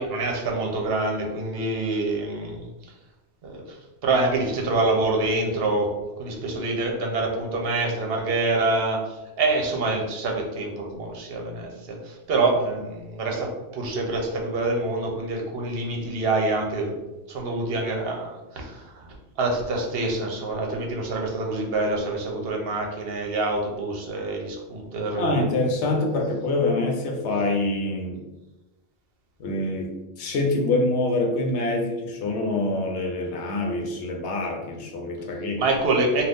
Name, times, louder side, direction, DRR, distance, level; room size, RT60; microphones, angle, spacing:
voice 1, 0.0-2.7 3.4-3.6 4.0-5.9 6.2-9.0 9.4-17.0 17.3-19.1 19.4-25.5 35.6-36.3, right 2 dB, 65° right, 1 dB, 0.8 m, -26 dB
voice 2, 25.2-28.2 29.4-35.7, left 2 dB, 80° left, 2 dB, 0.9 m, -25 dB
2.5 x 2.4 x 3.4 m, 1.0 s
omnidirectional pair, 1.1 m